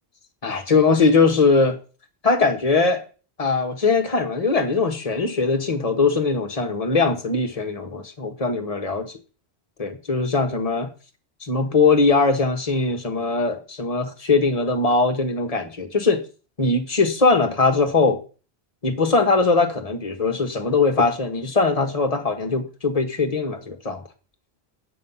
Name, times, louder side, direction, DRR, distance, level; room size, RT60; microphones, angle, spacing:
voice 1, 0.4-1.8 2.2-3.0 3.4-9.1 9.8-10.9 11.4-16.2 16.6-18.2 18.8-24.0, left 4 dB, 35° left, 1.4 m, -21 dB
8.6 x 6.0 x 5.6 m
omnidirectional pair, 1.1 m